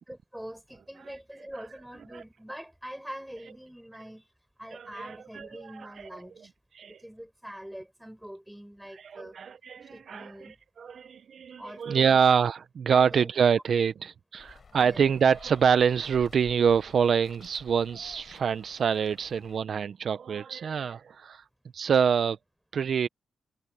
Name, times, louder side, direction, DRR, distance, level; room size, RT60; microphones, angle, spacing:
voice 1, 0.1-4.3 4.6-6.5 6.9-9.4 9.9-10.6 11.6-12.3 12.9-13.3 14.7-15.1, equal, 5° right, 5.7 m, -44 dB
voice 2, 4.7-6.1 6.8-7.0 9.0-10.5 10.8-21.4 21.7-22.4 22.7-23.1, right 7 dB, 60° right, 0.6 m, -26 dB
sound 1, 14.4-19.6, left 5 dB, 45° left, 4.6 m, -53 dB
cardioid pair, 100°, 0 cm